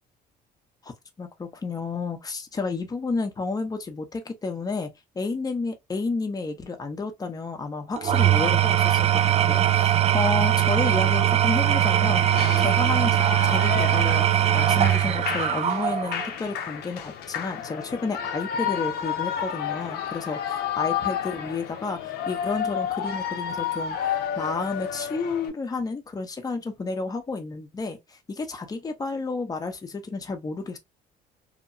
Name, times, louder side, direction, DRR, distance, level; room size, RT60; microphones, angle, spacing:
voice 1, 1.2-4.9 5.2-20.4 20.8-30.8, left 4 dB, 20° left, 0.7 m, -31 dB
Engine / Tools, 8.0-16.3, right 12 dB, 40° right, 0.4 m, -21 dB
Shout / Cheering, 11.6-25.5, left 8 dB, 70° left, 0.6 m, -31 dB
2.8 x 2.2 x 2.6 m
cardioid pair, 110°, 17 cm